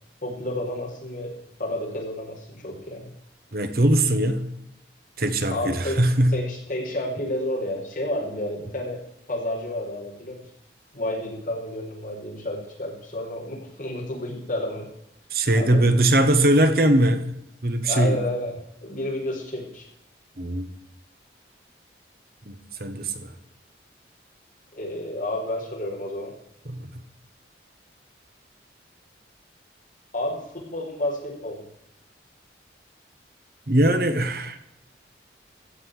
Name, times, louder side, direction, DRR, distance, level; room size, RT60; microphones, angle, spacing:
voice 1, 0.2-1.3 1.6-3.1 5.5-6.0 6.3-9.0 9.3-10.4 10.9-14.9 15.5-16.0 17.9-18.5 18.8-19.9 24.7-26.3 30.1-31.7, left 1 dB, 45° left, -3 dB, 5.1 m, -30 dB
voice 2, 3.5-4.5 5.2-6.4 15.3-17.3 17.6-18.2 20.4-20.7 22.5-23.3 26.7-26.9 33.7-34.6, right 1 dB, 55° right, 8 dB, 1.3 m, -21 dB
16.0 x 5.5 x 9.9 m, 0.83 s
head